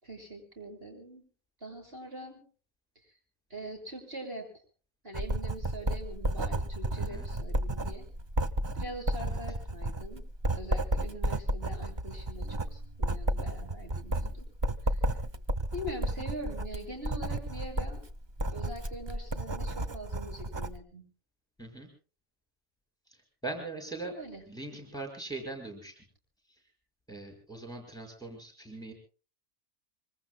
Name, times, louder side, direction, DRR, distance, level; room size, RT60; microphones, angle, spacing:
voice 1, 0.0-1.2 1.6-2.4 3.5-4.5 5.0-8.1 8.7-10.2 10.5-14.5 14.9-15.0 15.7-18.0 18.5-21.0 24.2-24.4, right 1 dB, 45° right, 1 dB, 6.9 m, -43 dB
Writing, 5.1-20.8, right 1 dB, 25° right, 0.6 m, -32 dB
voice 2, 7.0-7.3 9.2-9.4 21.6-21.9 23.1-24.1 24.5-26.0 26.5-26.6 27.1-28.9, right 2 dB, 5° left, 3 dB, 5.3 m, -41 dB
25.5 x 25.5 x 2.2 m, 0.39 s
omnidirectional pair, 1.4 m